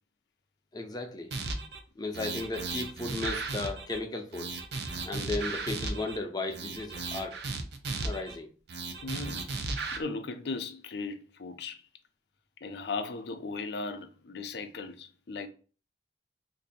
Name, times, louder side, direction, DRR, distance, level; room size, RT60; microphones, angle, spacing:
voice 1, 0.7-1.3 2.0-4.6 5.0-7.4 8.0-8.5, left 2 dB, 25° left, 0.5 m, -35 dB
sound 1, 1.3-1.8 2.1-4.0 4.3-6.2 6.5-8.4 8.7-10.0, right 3 dB, 65° right, 0.5 m, -35 dB
voice 2, 9.0-9.5 9.9-11.8 12.6-15.5, left 3 dB, 70° left, 0.5 m, -37 dB
2.6 x 2.6 x 3.9 m
head